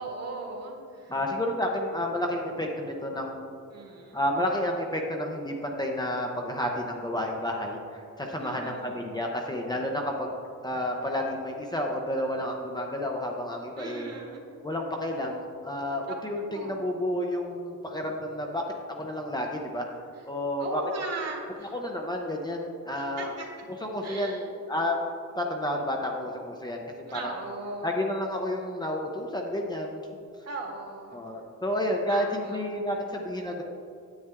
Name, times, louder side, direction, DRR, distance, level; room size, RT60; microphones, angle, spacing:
voice 1, 0.0-1.1 3.7-4.2 8.4-9.1 13.8-14.4 16.1-16.2 16.5-16.8 20.6-21.8 22.9-23.5 24.0-24.4 27.0-27.9 30.4-31.2 32.1-32.6, right 3 dB, 55° right, 1 dB, 1.7 m, -38 dB
voice 2, 1.1-3.5 4.1-10.4 10.6-14.1 14.6-18.6 19.0-19.9 20.3-20.8 21.7-23.3 23.8-25.0 25.4-26.8 27.1-27.3 27.8-30.0 31.1-33.6, left 1 dB, 15° left, 0 dB, 0.6 m, -30 dB
9.6 x 8.7 x 3.5 m, 2.5 s
wide cardioid pair, 160°, 32 cm